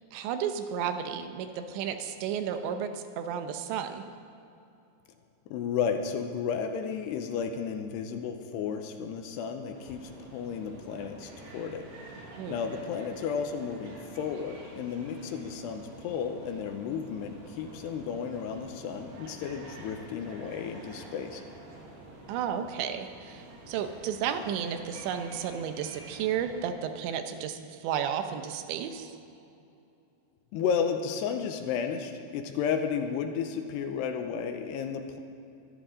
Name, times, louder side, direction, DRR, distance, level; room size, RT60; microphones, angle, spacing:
voice 1, 0.1-4.0 12.4-12.6 22.3-29.1, right 8 dB, 85° right, 8 dB, 3.2 m, -33 dB
voice 2, 5.5-11.9 12.5-21.4 30.5-35.2, left 6 dB, 80° left, 6 dB, 2.7 m, -33 dB
sound 1, 9.7-26.7, right 2 dB, 65° right, 4.0 m, -48 dB
24.0 x 12.5 x 3.8 m, 2.7 s
omnidirectional pair, 5.2 m